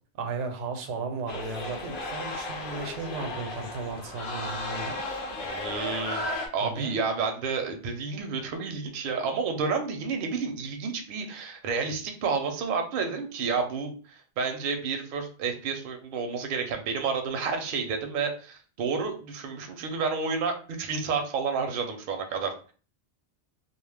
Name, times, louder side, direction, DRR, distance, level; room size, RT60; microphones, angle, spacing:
voice 1, 0.2-5.0 6.6-7.0, right 4 dB, 90° right, 6 dB, 0.9 m, -35 dB
sound 1, 1.3-6.5, left 2 dB, 60° left, 0.6 m, -34 dB
voice 2, 5.4-22.7, right 5 dB, 60° right, 5 dB, 0.6 m, -30 dB
2.2 x 2.0 x 3.2 m, 0.38 s
omnidirectional pair, 1.2 m